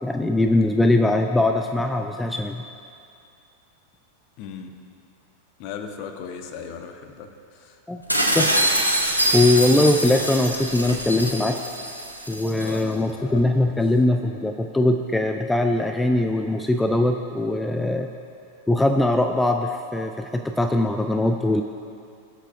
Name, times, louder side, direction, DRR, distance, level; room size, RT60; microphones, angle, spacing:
voice 1, 0.0-2.6 7.9-8.0 8.3-8.5 9.3-11.6 12.3-18.1 18.7-21.6, left 2 dB, 5° left, 5 dB, 0.4 m, -21 dB
voice 2, 4.4-4.7 5.6-7.3 7.6-7.7 12.6-13.8, left 6 dB, 45° left, 6 dB, 0.9 m, -37 dB
sound 1, 8.1-12.8, right 1 dB, 85° left, 0.9 m, -24 dB
20.0 x 7.3 x 2.5 m, 2.5 s
figure-of-eight pair, 90°, 0 cm